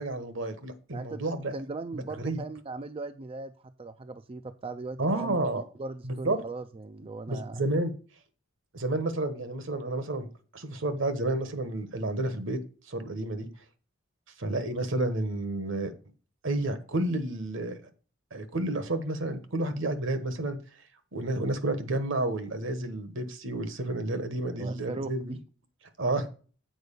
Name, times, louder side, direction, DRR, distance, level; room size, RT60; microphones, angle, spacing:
voice 1, 0.0-1.5 1.9-2.4 5.0-5.6 6.0-6.4 7.3-7.9 8.7-10.3 10.5-12.6 12.9-13.5 14.4-15.9 16.4-17.8 18.3-20.6 21.1-25.4 26.0-26.3, right 2 dB, 65° right, 10 dB, 1.3 m, -30 dB
voice 2, 1.5-3.5 3.8-7.6 24.5-25.4, right 3 dB, 30° right, 10 dB, 0.4 m, -39 dB
8.0 x 4.7 x 6.7 m, 0.39 s
head